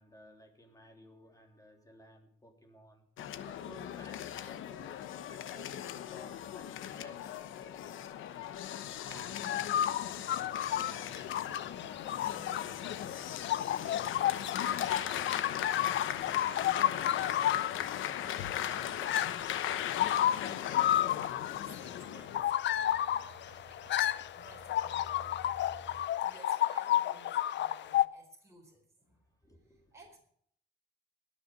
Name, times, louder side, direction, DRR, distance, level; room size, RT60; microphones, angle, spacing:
voice 1, 0.0-3.1 3.4-9.1 9.9-11.0 22.4-22.5 29.4-29.9, left 1 dB, 15° left, 3 dB, 3.3 m, -58 dB
sound 1, 3.2-22.4, left 11 dB, 80° left, 1.0 m, -38 dB
voice 2, 8.9-9.4 10.9-17.4 18.7-19.6 21.6-23.3 24.3-25.3 26.2-29.3 29.7-30.2, right 2 dB, 15° right, -1 dB, 4.4 m, -57 dB
sound 2, 9.1-26.1, right 4 dB, 55° right, 1.5 m, -58 dB
sound 3, 9.3-28.1, left 12 dB, 65° left, 0.6 m, -32 dB
19.0 x 6.8 x 5.5 m, 0.65 s
cardioid pair, 90°, 20 cm